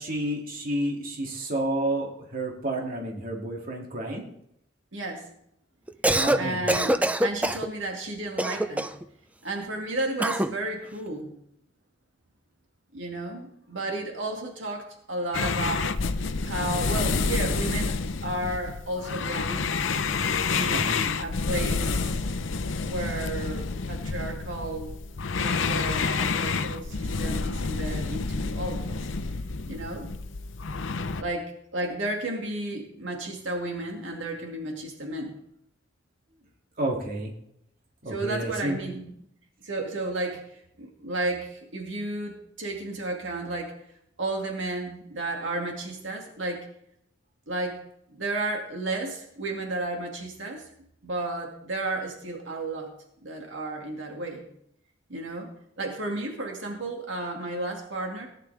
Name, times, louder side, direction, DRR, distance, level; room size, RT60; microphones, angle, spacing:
voice 1, 0.0-4.2 6.1-6.6 20.7-20.9 36.8-37.3 38.0-38.8, right 1 dB, 50° right, 0 dB, 2.5 m, -30 dB
voice 2, 4.9-5.3 6.3-8.9 9.4-11.3 12.9-19.7 20.5-22.2 22.8-24.9 25.4-29.0 29.7-30.1 31.2-35.4 38.1-39.1 39.6-43.7 44.2-46.7 47.5-47.8 48.1-50.7 51.0-52.9 53.2-54.4 55.1-58.3, right 2 dB, 80° right, 1 dB, 2.3 m, -33 dB
Cough, 5.9-6.4 6.7-7.7 8.4-9.0 10.2-10.5, right 1 dB, 10° right, 0.5 m, -24 dB
sound 1, 15.3-31.2, left 4 dB, 85° left, 0.7 m, -29 dB
18.5 x 10.5 x 3.4 m, 0.74 s
head